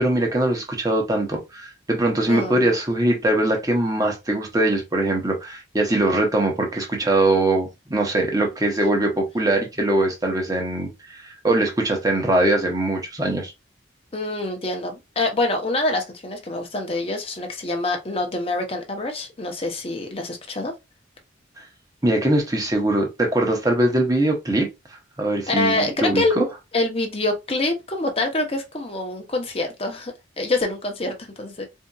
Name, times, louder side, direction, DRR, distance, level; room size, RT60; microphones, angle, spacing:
voice 1, 0.0-13.5 22.0-24.7 25.2-26.4, right 1 dB, 20° right, 1.0 m, -22 dB
voice 2, 2.3-2.7 14.1-20.7 25.5-26.4 26.7-31.7, left 2 dB, 30° left, 0.9 m, -26 dB
4.2 x 2.7 x 2.3 m
head